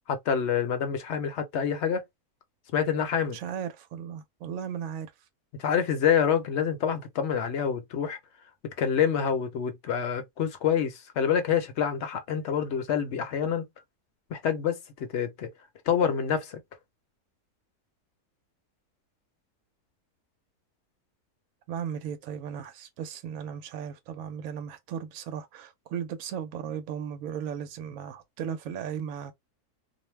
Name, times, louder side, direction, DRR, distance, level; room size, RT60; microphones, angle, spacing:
voice 1, 0.1-2.0 2.7-3.4 5.6-8.2 8.8-13.6 14.3-15.5 15.9-16.6, left 8 dB, 60° left, 0.8 m, -27 dB
voice 2, 3.3-5.1 21.7-29.3, right 8 dB, 65° right, 1.0 m, -36 dB
2.6 x 2.1 x 3.1 m
omnidirectional pair, 1.6 m